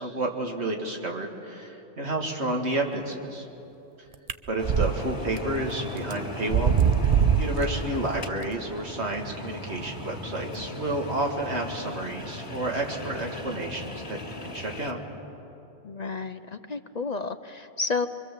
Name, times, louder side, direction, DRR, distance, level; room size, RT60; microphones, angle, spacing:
voice 1, 0.0-3.5 4.5-6.7 7.0-15.0, right 1 dB, 80° right, 1 dB, 2.5 m, -31 dB
sound 1, 4.3-4.9 5.4-5.5 6.1-6.2 6.5-7.6, right 7 dB, 40° right, 0.6 m, -21 dB
sound 2, 4.6-14.9, left 1 dB, 75° left, 2.4 m, -37 dB
voice 2, 15.8-18.1, left 4 dB, 45° left, 9 dB, 0.7 m, -31 dB
25.0 x 24.5 x 7.5 m, 2.9 s
omnidirectional pair, 1.1 m